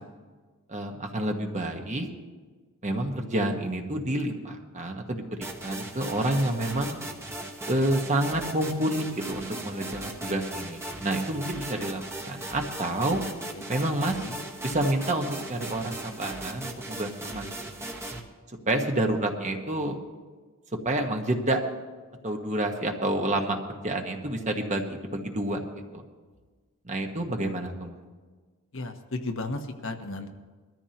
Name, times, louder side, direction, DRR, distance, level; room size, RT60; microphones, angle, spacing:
voice 1, 0.7-2.1 2.8-5.2 5.6-7.0 7.7-13.2 13.7-14.3 14.6-17.5 18.7-20.0 20.8-21.6 22.2-26.0 26.8-28.0, right 1 dB, 30° right, 3 dB, 1.3 m, -29 dB
sound 1, 5.4-18.2, right 1 dB, 10° right, 1.3 m, -38 dB
voice 2, 28.7-30.3, left 2 dB, 60° left, 5 dB, 1.1 m, -34 dB
21.5 x 13.5 x 3.0 m, 1.4 s
head